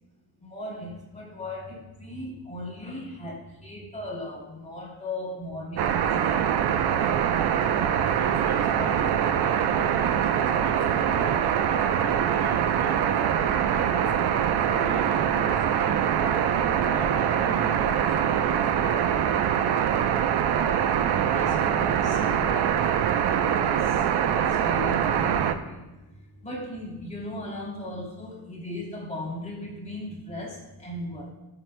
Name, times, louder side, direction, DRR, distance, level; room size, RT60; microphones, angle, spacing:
voice 1, 0.4-6.6 21.2-31.3, left 1 dB, 20° left, -3 dB, 2.7 m, -38 dB
sound 1, 5.8-25.5, right 9 dB, 85° right, 0.8 m, -23 dB
voice 2, 8.2-13.2 13.7-16.5 16.8-18.6 19.9-20.0, left 2 dB, 70° left, 0 dB, 2.5 m, -41 dB
20.0 x 7.7 x 2.2 m, 1.0 s
cardioid pair, 105°, 39 cm